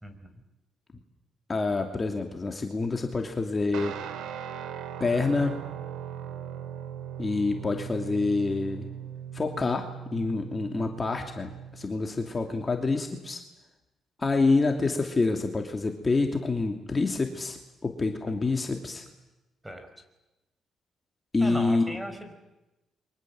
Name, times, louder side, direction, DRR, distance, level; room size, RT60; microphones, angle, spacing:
voice 1, 0.0-0.3 19.6-19.9 21.4-22.3, equal, 10° right, 8 dB, 5.3 m, -37 dB
voice 2, 1.5-3.9 5.0-5.6 7.2-8.9 9.3-13.4 14.2-19.0 21.3-22.0, left 3 dB, 25° left, 3 dB, 2.8 m, -27 dB
Guitar, 3.7-11.9, right 9 dB, 85° right, 2.4 m, -39 dB
29.5 x 24.5 x 7.8 m, 1.0 s
cardioid pair, 90°, 0 cm